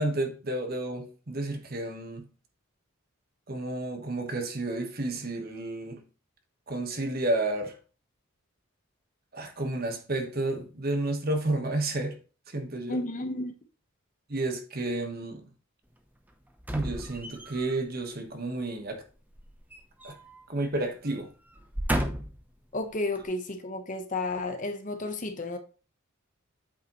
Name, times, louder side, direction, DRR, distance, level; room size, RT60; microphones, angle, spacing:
voice 1, 0.0-2.2 3.5-6.0 6.7-7.8 9.3-12.2 12.5-13.0 14.3-15.5 16.7-19.0 20.0-20.2 20.5-21.3, right 2 dB, 45° right, 1.2 m, -31 dB
voice 2, 12.9-13.5 22.7-25.6, left 2 dB, 35° left, 0.9 m, -32 dB
sound 1, 16.6-17.8 19.3-20.5 20.8-21.0 21.5-22.5 23.1-23.2, equal, 10° right, 0.7 m, -33 dB
8.4 x 5.4 x 3.0 m
head